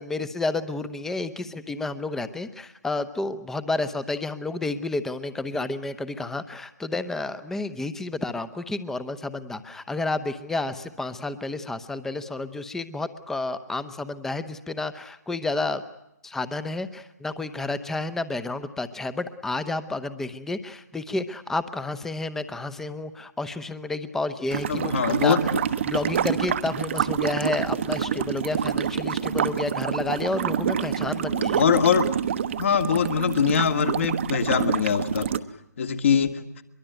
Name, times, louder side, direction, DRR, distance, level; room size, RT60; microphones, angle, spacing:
voice 1, 0.0-15.8 16.2-25.5 25.8-31.7, left 2 dB, 5° left, 13 dB, 0.9 m, -30 dB
sound 1, 24.5-35.4, right 8 dB, 45° right, 1.1 m, -27 dB
voice 2, 24.7-25.4 31.3-32.1 32.6-35.3 35.8-36.4, left 7 dB, 45° left, 9 dB, 2.0 m, -22 dB
23.0 x 23.0 x 9.1 m, 0.85 s
figure-of-eight pair, 140°, 10 cm